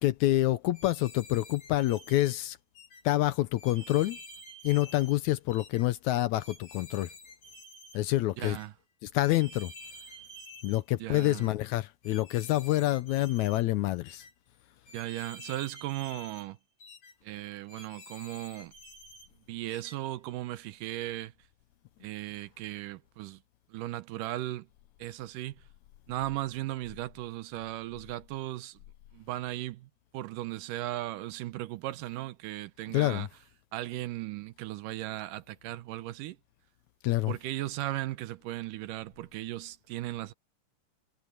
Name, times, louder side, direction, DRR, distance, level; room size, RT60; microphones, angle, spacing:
voice 1, 0.0-2.6 3.1-4.2 4.6-7.1 7.9-8.6 9.0-9.7 10.6-14.2 32.9-33.3 37.0-37.3, left 16 dB, 80° left, 1.9 m, -27 dB
sound 1, 0.7-2.3 2.7-3.0 3.6-5.2 5.5-5.9 6.4-8.0 8.4-8.7 9.2-10.8 11.1-11.5 12.0-13.6 14.0-14.3 14.9-16.5 16.8-17.1 17.7-19.3 19.7-20.0, equal, 55° left, 6.3 m, -50 dB
voice 2, 8.4-8.7 11.0-11.5 14.9-16.6 17.2-18.7 19.5-21.3 22.0-23.4 23.7-24.7 25.0-25.6 26.1-28.8 29.1-33.3 33.7-36.4 37.3-40.3, right 15 dB, 85° right, 2.5 m, -37 dB
omnidirectional pair, 3.7 m